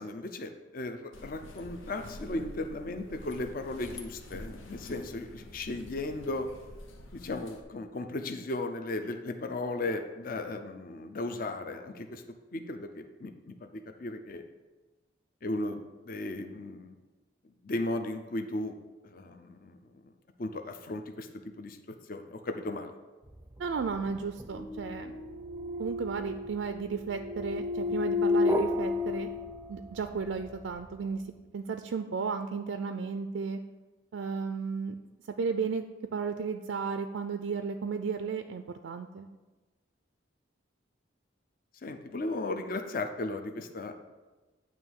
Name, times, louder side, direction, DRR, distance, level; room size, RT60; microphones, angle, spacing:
voice 1, 0.0-6.5 7.1-12.2 12.5-14.4 15.4-16.9 17.6-18.7 19.0-19.8 20.4-21.8 22.1-22.9 41.8-43.9, left 2 dB, 45° left, 6 dB, 0.5 m, -36 dB
sound 1, 1.1-7.6, left 1 dB, 90° left, 0.8 m, -47 dB
sound 2, 23.6-30.1, left 3 dB, 10° right, 0.5 m, -32 dB
voice 2, 23.6-25.1 25.8-29.3 29.7-31.2 31.5-33.6 34.1-35.0 35.4-35.8 36.1-39.3, right 5 dB, 75° right, 7 dB, 0.4 m, -34 dB
9.1 x 3.0 x 6.3 m, 1.2 s
head